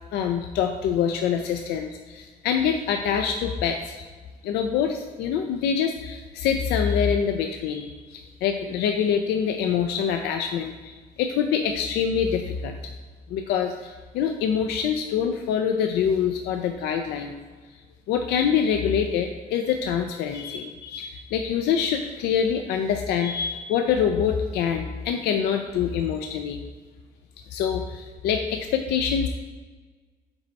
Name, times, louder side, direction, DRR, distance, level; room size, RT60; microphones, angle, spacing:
voice 1, 0.1-4.1 4.4-12.9 13.3-17.4 18.1-26.6 27.5-29.3, left 7 dB, 75° left, 5 dB, 0.4 m, -25 dB
5.3 x 4.1 x 4.6 m, 1.4 s
cardioid pair, 110°, 17 cm